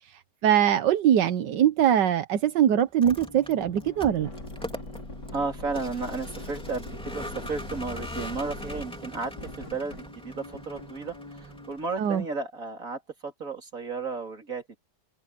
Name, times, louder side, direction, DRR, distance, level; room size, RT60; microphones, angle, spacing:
voice 1, 0.4-4.3 12.0-12.2, right 10 dB, 85° right, 1.6 m, -22 dB
Vehicle, 2.9-12.3, equal, 5° left, 2.9 m, -42 dB
sound 1, 3.2-11.8, left 2 dB, 80° left, 6.4 m, -42 dB
voice 2, 5.3-14.8, right 4 dB, 50° right, 4.1 m, -34 dB
omnidirectional pair, 1.8 m